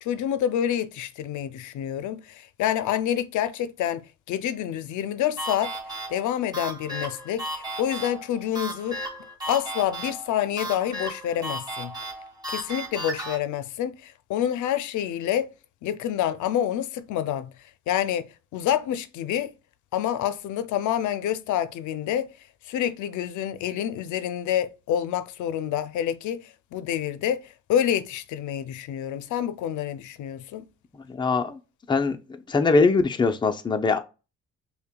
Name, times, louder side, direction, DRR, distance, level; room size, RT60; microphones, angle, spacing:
voice 1, 0.0-5.7 6.1-9.0 9.5-11.9 12.5-15.5 15.8-17.5 17.9-18.3 18.5-19.5 19.9-22.3 22.6-30.6, left 10 dB, 80° left, 0.5 m, -27 dB
sound 1, 5.4-13.4, right 1 dB, 15° right, 1.5 m, -35 dB
voice 2, 31.2-31.5 31.9-32.2 32.5-34.0, left 4 dB, 15° left, 0.4 m, -21 dB
5.4 x 2.2 x 2.2 m
cardioid pair, 90°, 30 cm